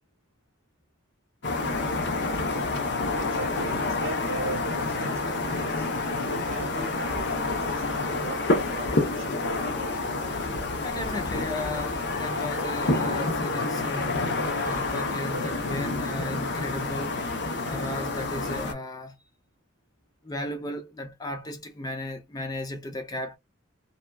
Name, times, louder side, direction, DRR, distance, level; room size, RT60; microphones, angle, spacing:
sound 1, 1.4-18.7, left 3 dB, 55° left, 0.7 m, -28 dB
voice 1, 3.2-9.8, right 3 dB, 75° right, 0.8 m, -39 dB
voice 2, 10.8-14.2 14.6-17.2 17.6-19.2 20.2-23.4, left 1 dB, 20° left, 0.3 m, -35 dB
2.7 x 2.2 x 2.2 m
head